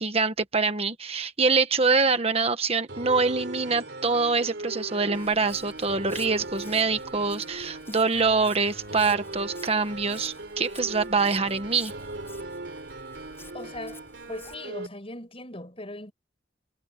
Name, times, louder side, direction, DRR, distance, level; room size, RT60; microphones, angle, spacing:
voice 1, 0.0-11.9, right 4 dB, 35° right, 1.3 m, -25 dB
sound 1, 2.9-14.9, right 2 dB, 75° right, 3.5 m, -39 dB
Walk footsteps, 5.1-14.5, left 3 dB, 15° left, 7.3 m, -51 dB
voice 2, 13.5-16.1, left 1 dB, 35° left, 5.9 m, -39 dB
head